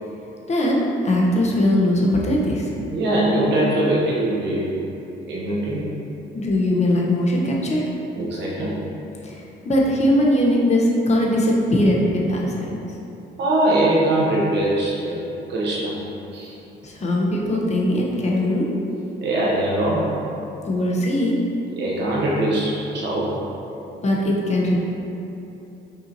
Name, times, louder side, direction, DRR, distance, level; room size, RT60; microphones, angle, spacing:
voice 1, 0.5-2.7 6.3-7.9 9.2-12.7 16.8-18.7 20.6-21.4 24.0-24.8, left 1 dB, 35° left, -3 dB, 0.7 m, -20 dB
voice 2, 2.9-4.8 5.2-5.9 8.2-8.8 13.4-16.0 16.3-16.5 19.2-20.2 21.8-23.4, right 1 dB, 60° right, -5 dB, 0.8 m, -22 dB
5.3 x 2.8 x 2.6 m, 2.9 s
cardioid pair, 90°, 20 cm